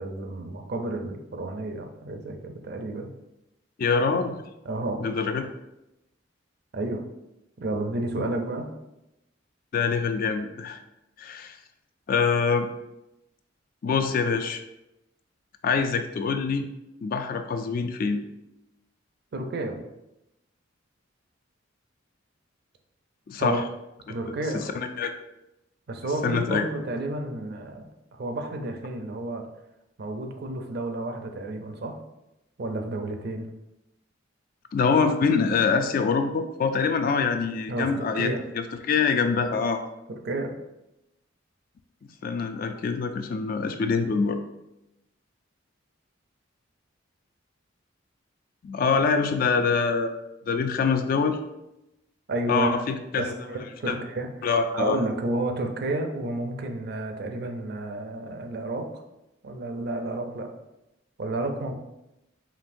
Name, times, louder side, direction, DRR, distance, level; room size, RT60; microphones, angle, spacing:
voice 1, 0.0-3.1 4.6-5.0 6.7-7.0 7.6-8.7 19.3-19.8 23.4-23.6 24.1-24.7 25.9-29.4 30.0-32.0 32.6-33.5 37.7-38.4 39.5-39.7 40.2-40.6 52.3-52.8 53.2-54.3 54.7-58.9 59.4-60.5 61.2-61.7, right 2 dB, 55° right, 5 dB, 0.5 m, -31 dB
voice 2, 3.8-4.3 5.0-5.4 8.2-8.3 9.7-10.8 11.2-11.6 12.1-12.7 13.8-14.6 15.6-16.7 17.0-18.2 23.3-23.6 24.3-25.1 26.2-26.6 34.7-39.8 42.2-44.4 48.6-50.2 50.5-51.4 52.5-53.3 53.9-54.0 54.4-55.0, left 5 dB, 45° left, 8 dB, 0.3 m, -25 dB
5.1 x 2.8 x 2.6 m, 0.91 s
head